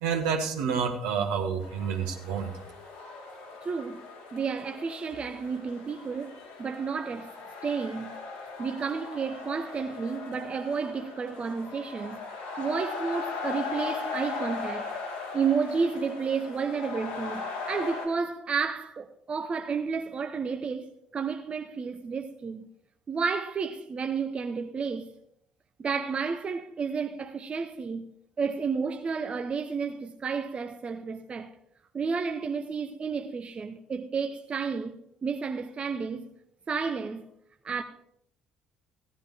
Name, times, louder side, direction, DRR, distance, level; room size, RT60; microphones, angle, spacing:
voice 1, 0.0-2.5, right 6 dB, 75° right, 1.4 m, -29 dB
sound 1, 1.6-18.1, left 4 dB, 75° left, 2.3 m, -38 dB
voice 2, 3.6-4.1 4.3-7.3 7.6-8.1 8.6-12.2 12.6-14.9 15.3-22.7 23.1-25.1 25.8-28.1 28.4-31.5 31.9-36.3 36.7-37.3 37.6-37.8, right 5 dB, 35° right, 0.7 m, -31 dB
15.0 x 11.0 x 3.5 m
hypercardioid pair, 50°, 3 cm